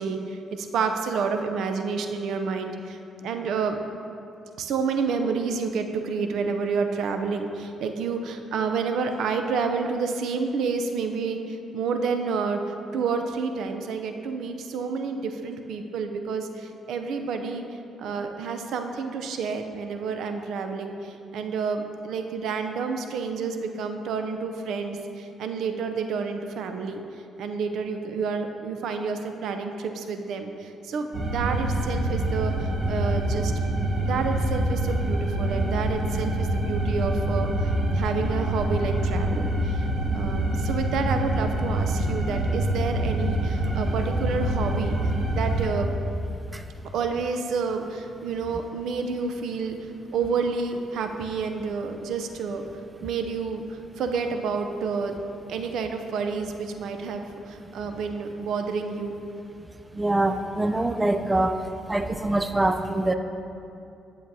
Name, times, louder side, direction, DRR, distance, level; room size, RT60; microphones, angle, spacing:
voice 1, 0.0-3.0 3.2-3.8 4.6-12.6 12.9-17.6 18.0-27.0 27.4-33.5 34.0-39.9 40.1-45.0 45.3-45.9 46.9-49.8 50.1-52.6 53.0-55.2 55.5-59.1, right 5 dB, 75° right, 6 dB, 0.5 m, -29 dB
sound 1, 31.1-45.7, right 1 dB, 50° right, 1.3 m, -26 dB
voice 2, 59.9-61.6 61.9-63.1, right 2 dB, 15° right, 8 dB, 0.3 m, -24 dB
9.9 x 7.4 x 2.7 m, 2.6 s
cardioid pair, 90°, 0 cm